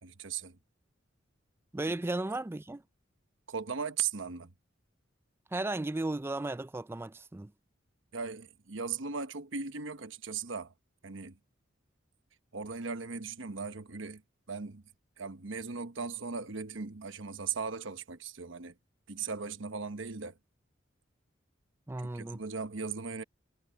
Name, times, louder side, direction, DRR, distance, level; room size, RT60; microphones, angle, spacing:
voice 1, 0.0-0.6 3.5-4.5 8.1-10.7 11.0-11.4 12.5-14.2 14.5-14.8 15.2-18.7 19.1-20.3 22.1-23.2, right 5 dB, 70° right, 1.1 m, -38 dB
voice 2, 1.7-2.8 5.5-7.5 21.9-22.4, right 2 dB, 10° right, 0.4 m, -35 dB
head